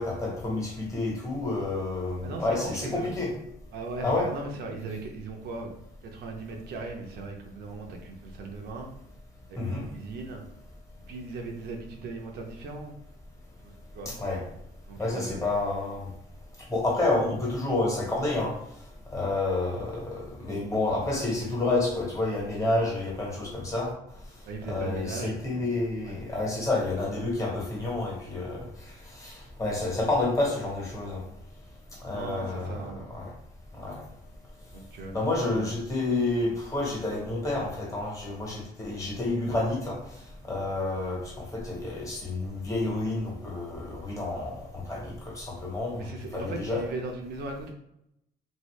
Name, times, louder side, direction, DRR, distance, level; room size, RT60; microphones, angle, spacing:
voice 1, 0.0-3.3 4.0-4.3 9.6-9.8 14.0-14.4 15.0-16.1 16.7-18.5 19.1-23.9 24.6-28.6 29.2-31.2 32.0-33.3 33.8-34.0 35.1-40.0 40.5-41.2 41.5-46.1 46.3-46.8, left 2 dB, 20° left, -3 dB, 1.3 m, -29 dB
voice 2, 2.2-3.1 3.7-5.7 6.0-8.9 9.5-10.4 11.1-13.0 13.6-14.1 14.9-15.4 24.4-25.8 26.0-26.2 32.1-33.1 34.7-35.7 46.0-47.7, right 3 dB, 70° right, 3 dB, 0.7 m, -38 dB
2.7 x 2.7 x 3.2 m, 0.81 s
cardioid pair, 110°, 17 cm